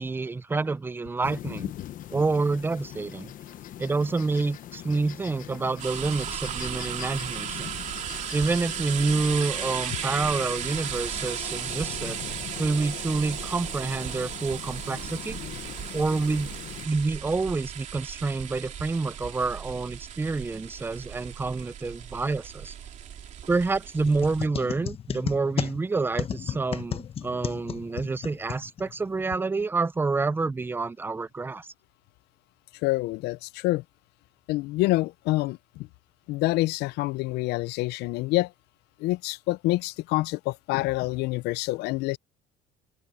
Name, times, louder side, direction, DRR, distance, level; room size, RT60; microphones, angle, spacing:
voice 1, 0.0-1.7 2.1-3.3 3.8-7.7 8.3-12.2 12.6-15.4 15.9-16.5 16.8-22.7 23.5-31.7, right 3 dB, 15° right, 0.5 m, -28 dB
sound 1, 1.2-16.9, left 12 dB, 55° left, 0.9 m, -41 dB
sound 2, 5.8-24.5, right 9 dB, 45° right, 2.9 m, -36 dB
sound 3, 24.0-29.2, left 8 dB, 35° left, 1.2 m, -34 dB
voice 2, 32.8-33.8 34.5-35.9 36.3-38.5 39.0-42.2, left 19 dB, 80° left, 0.5 m, -27 dB
open air
cardioid pair, 140°, 17 cm